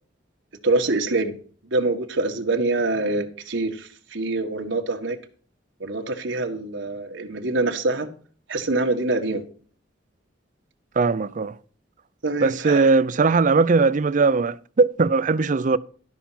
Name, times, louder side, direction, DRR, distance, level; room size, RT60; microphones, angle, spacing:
voice 1, 0.6-1.4 1.6-5.2 5.8-8.1 8.5-9.4 12.2-12.9, right 2 dB, 85° right, 1.5 m, -25 dB
voice 2, 11.0-11.5 12.4-15.8, right 4 dB, 45° right, 0.5 m, -19 dB
12.5 x 5.8 x 5.8 m
head